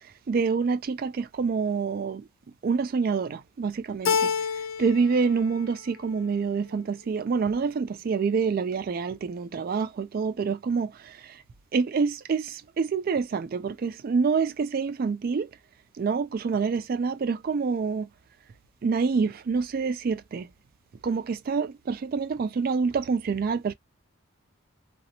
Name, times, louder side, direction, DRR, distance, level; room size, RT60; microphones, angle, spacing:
voice 1, 0.3-2.2 2.6-4.3 4.8-10.9 11.7-15.5 16.0-18.1 18.8-20.5 21.0-23.7, right 5 dB, 45° right, 0.3 m, -27 dB
Keyboard (musical), 4.1-5.2 5.5-6.2, left 6 dB, 65° left, 0.3 m, -28 dB
2.8 x 2.0 x 2.7 m
head